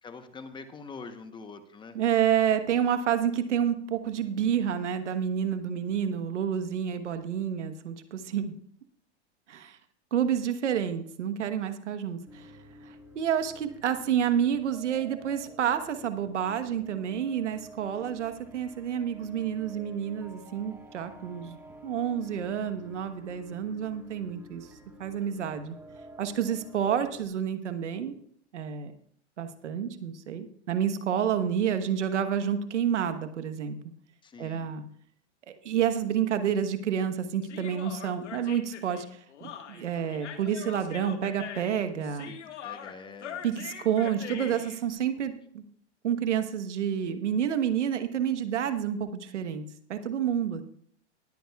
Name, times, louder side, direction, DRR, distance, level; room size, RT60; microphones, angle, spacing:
voice 1, 0.0-2.0 34.2-34.7 42.3-42.4 42.6-43.4 43.9-44.0 44.2-44.6, left 4 dB, 15° left, 9 dB, 0.9 m, -45 dB
voice 2, 1.9-8.6 9.5-9.8 10.1-12.5 12.8-21.6 21.8-24.7 25.0-25.8 26.2-28.1 28.5-28.9 29.4-33.8 34.4-34.8 35.6-42.3 43.4-45.6 46.0-49.6 49.9-50.6, right 9 dB, 90° right, 9 dB, 1.3 m, -29 dB
sound 1, 12.3-27.3, right 1 dB, 5° right, 1.5 m, -50 dB
Human voice, 37.4-44.8, left 8 dB, 85° left, 1.6 m, -42 dB
20.5 x 9.0 x 2.4 m, 0.63 s
hypercardioid pair, 130°, 34 cm